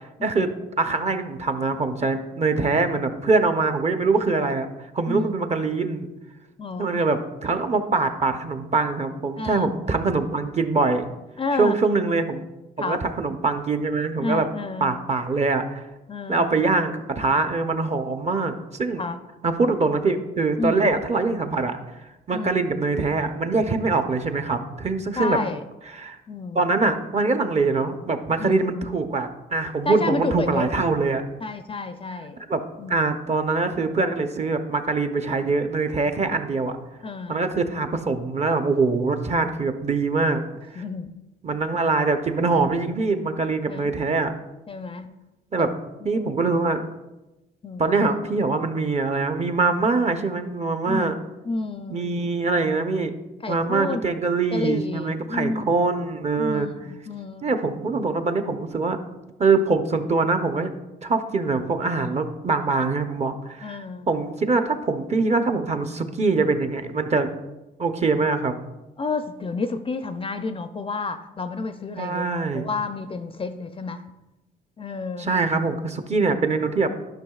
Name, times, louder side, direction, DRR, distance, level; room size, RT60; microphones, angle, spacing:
voice 1, 0.8-4.7 4.9-6.1 6.8-11.1 11.6-12.5 12.8-14.5 14.8-15.9 16.3-19.0 19.4-21.8 22.3-25.4 25.9-26.2 26.5-31.2 32.5-32.6 32.9-36.8 37.3-40.4 40.7-40.8 41.4-44.3 45.5-45.7 46.0-46.9 47.8-51.2 51.9-53.1 53.5-56.7 57.4-59.0 59.4-60.7 61.0-67.3 67.8-68.5 71.9-72.7 75.2-76.9, right 3 dB, 35° right, 8 dB, 0.7 m, -23 dB
voice 2, 5.1-5.4 6.6-7.1 9.4-9.7 11.4-11.8 12.8-13.0 14.2-15.0 16.1-16.5 19.0-19.2 20.6-20.9 22.3-22.5 25.2-25.6 26.3-26.6 28.4-28.6 29.9-30.7 31.4-32.4 32.8-33.0 37.0-37.5 40.8-41.1 41.7-41.9 43.7-43.9 44.7-45.1 45.6-45.7 46.0-46.3 47.6-47.8 50.9-51.2 51.4-52.1 53.4-54.1 54.5-55.7 56.4-57.5 63.6-64.1 69.0-72.3 72.5-74.0 74.8-75.3, left 3 dB, 25° left, 9 dB, 0.4 m, -30 dB
11.5 x 5.7 x 2.4 m, 1.0 s
cardioid pair, 90°, 20 cm